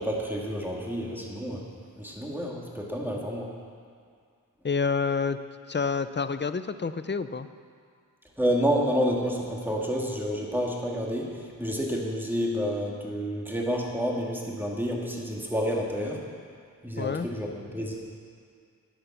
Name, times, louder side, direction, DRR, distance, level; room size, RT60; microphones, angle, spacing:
voice 1, 0.0-1.6 2.0-3.5 8.4-11.3 11.6-16.2 16.8-17.9, equal, 5° right, -2 dB, 2.3 m, -29 dB
voice 2, 4.6-5.4 5.7-7.5 17.0-17.3, left 5 dB, 30° left, 12 dB, 0.5 m, -28 dB
11.0 x 10.5 x 7.3 m, 2.2 s
wide cardioid pair, 75°, 35 cm